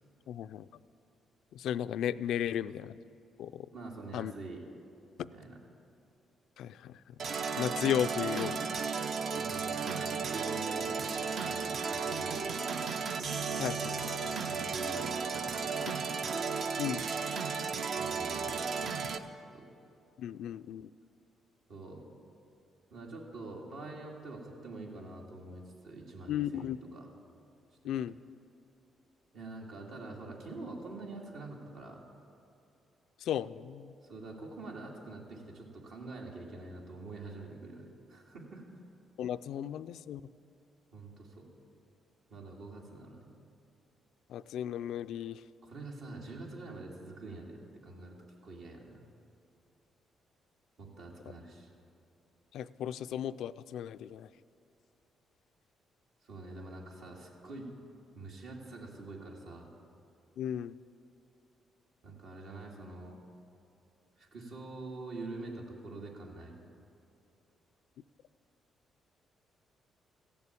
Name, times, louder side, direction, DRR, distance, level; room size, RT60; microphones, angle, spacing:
voice 1, 0.3-0.7 1.5-3.0 3.4-3.7 4.1-4.3 5.2-5.3 6.6-7.1 7.6-8.8 13.6-14.1 16.8-17.1 20.2-20.9 26.3-26.8 27.8-28.2 33.2-33.9 39.2-40.2 44.3-45.4 52.5-54.3 60.4-60.8, left 10 dB, 80° left, 14 dB, 0.3 m, -35 dB
voice 2, 3.7-4.6 5.3-5.6 9.4-12.9 14.2-16.1 18.0-19.7 21.7-22.0 22.9-27.1 29.3-32.0 34.0-38.8 40.9-41.5 42.3-43.2 45.6-48.2 48.4-49.0 50.8-51.7 56.2-57.7 58.1-59.7 62.0-63.2 64.2-66.6, right 2 dB, 75° right, -1 dB, 2.4 m, -46 dB
sound 1, 7.2-19.2, right 5 dB, 60° right, 0.7 m, -34 dB
15.0 x 7.0 x 8.4 m, 2.7 s
cardioid pair, 90°, 0 cm